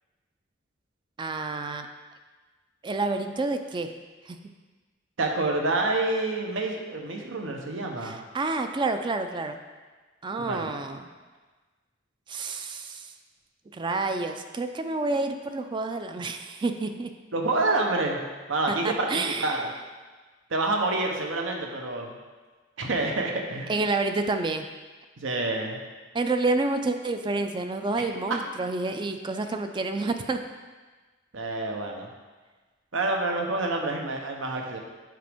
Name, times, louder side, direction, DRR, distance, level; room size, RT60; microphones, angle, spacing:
voice 1, 1.2-1.9 2.8-3.9 4.3-4.4 8.0-9.6 10.2-11.1 12.3-13.1 13.7-17.1 18.7-19.6 23.7-24.7 26.1-30.4, right 3 dB, 25° right, 7 dB, 0.3 m, -29 dB
voice 2, 5.2-8.2 10.4-10.7 17.3-18.2 18.5-19.7 20.5-22.2 22.8-23.8 25.2-25.8 28.0-28.4 31.3-32.1 32.9-34.8, right 2 dB, 80° right, 1 dB, 0.9 m, -28 dB
7.6 x 5.0 x 3.5 m, 1.3 s
head